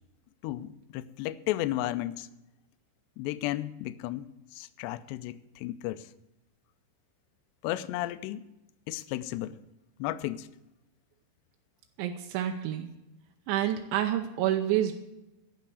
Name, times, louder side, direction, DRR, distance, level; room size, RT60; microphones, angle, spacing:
voice 1, 0.4-2.3 3.2-6.1 7.6-8.4 8.9-9.6 10.0-10.5, left 15 dB, 80° left, 2.6 m, -34 dB
voice 2, 12.0-12.9 13.5-14.9, right 11 dB, 85° right, 3.2 m, -28 dB
13.5 x 5.8 x 9.3 m
omnidirectional pair, 5.3 m